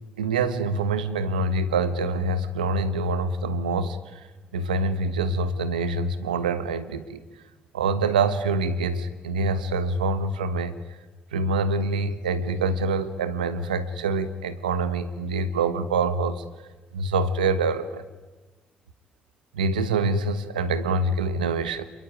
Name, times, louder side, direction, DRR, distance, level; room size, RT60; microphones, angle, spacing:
voice 1, 0.2-4.3 4.5-7.2 7.7-11.0 11.3-16.4 16.9-18.0 19.5-21.8, right 3 dB, 90° right, 13 dB, 1.3 m, -25 dB
28.0 x 22.0 x 9.5 m, 1.2 s
hypercardioid pair, 40°, 4 cm